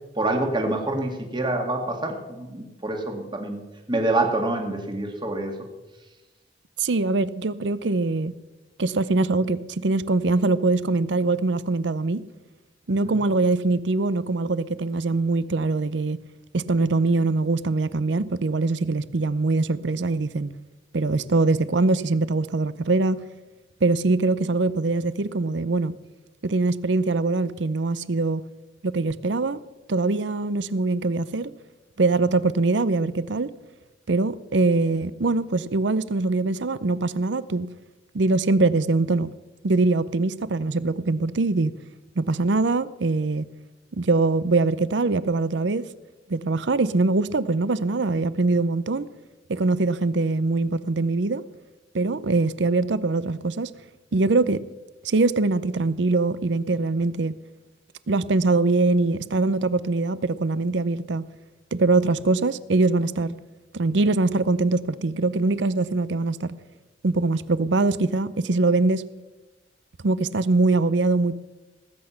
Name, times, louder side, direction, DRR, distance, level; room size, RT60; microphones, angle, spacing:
voice 1, 0.2-3.6 3.9-5.5 13.0-13.2, right 2 dB, 25° right, 2.0 m, -26 dB
voice 2, 6.8-8.3 8.8-12.2 12.9-16.2 16.5-20.5 20.9-23.2 23.8-25.9 26.4-28.4 28.8-29.6 29.9-31.5 32.0-33.5 34.1-37.7 38.1-39.3 39.6-41.7 42.2-43.4 43.9-45.8 46.3-49.1 49.5-51.4 51.9-53.7 54.1-54.6 55.0-57.3 58.1-61.2 61.7-63.4 63.7-66.5 67.0-69.0 70.0-71.4, right 3 dB, 70° right, 0.6 m, -23 dB
19.0 x 8.8 x 5.8 m
head